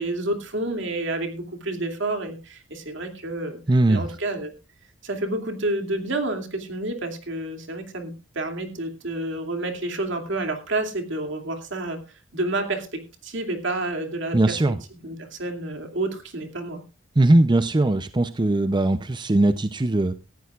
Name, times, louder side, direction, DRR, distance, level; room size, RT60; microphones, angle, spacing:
voice 1, 0.0-3.6 3.9-4.5 5.0-12.0 12.3-14.6 14.9-16.8, right 2 dB, 65° right, 5 dB, 2.6 m, -29 dB
voice 2, 3.7-4.0 14.3-14.8 17.2-20.1, right 2 dB, 25° right, 11 dB, 0.6 m, -20 dB
17.5 x 14.0 x 2.4 m, 0.30 s
head